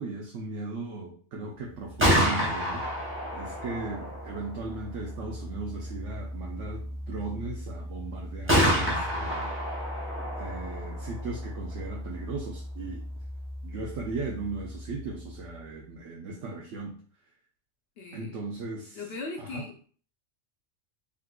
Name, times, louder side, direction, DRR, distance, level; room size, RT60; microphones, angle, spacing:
voice 1, 0.0-2.9 3.3-9.6 10.4-13.0 13.6-17.0 18.1-19.1 19.4-19.7, right 3 dB, 90° right, -1 dB, 1.0 m, -37 dB
Gunshot gunfire, 1.8-15.6, equal, 15° right, 0.6 m, -31 dB
voice 2, 18.0-18.4 18.9-19.9, left 3 dB, 60° left, 0 dB, 0.8 m, -40 dB
3.6 x 2.4 x 2.2 m, 0.43 s
omnidirectional pair, 1.2 m